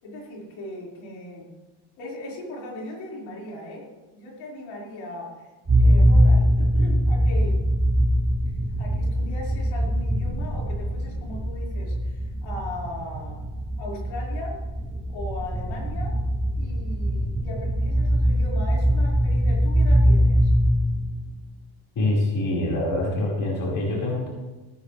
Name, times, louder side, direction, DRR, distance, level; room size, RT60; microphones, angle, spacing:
voice 1, 0.0-1.5 2.0-5.5 5.8-7.6 8.8-13.4 13.8-14.6 15.1-16.2 16.6-20.5, left 1 dB, 65° left, -4 dB, 5.7 m, -38 dB
sound 1, 5.7-21.3, equal, 15° right, 3.7 m, -22 dB
voice 2, 21.9-24.3, left 1 dB, 40° left, -5 dB, 5.2 m, -25 dB
18.0 x 13.5 x 3.5 m, 1.1 s
cardioid pair, 130°, 50 cm